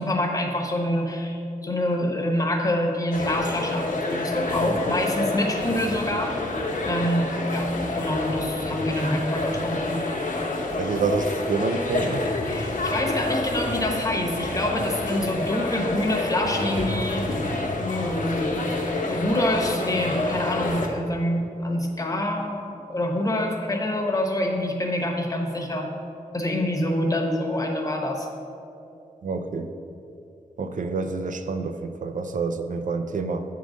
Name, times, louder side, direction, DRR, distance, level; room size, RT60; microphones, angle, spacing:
voice 1, 0.0-6.4 6.9-10.0 12.5-17.4 17.8-25.9 26.3-28.3, left 1 dB, 25° left, 1 dB, 0.9 m, -26 dB
sound 1, 3.1-20.9, left 2 dB, 65° left, 0.9 m, -28 dB
voice 2, 10.8-12.3 29.2-29.7 30.6-33.5, right 4 dB, 65° right, 8 dB, 0.4 m, -27 dB
8.1 x 3.8 x 6.3 m, 2.7 s
wide cardioid pair, 120°, 14 cm